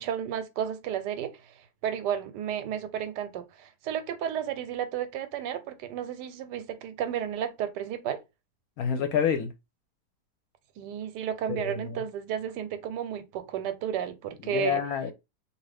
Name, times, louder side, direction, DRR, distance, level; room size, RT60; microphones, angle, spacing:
voice 1, 0.0-1.5 1.8-8.2 10.8-14.8, right 9 dB, 85° right, 1.2 m, -32 dB
voice 2, 8.8-9.5 11.5-12.0 14.4-15.1, left 7 dB, 70° left, 1.0 m, -28 dB
2.7 x 2.5 x 3.3 m
omnidirectional pair, 1.8 m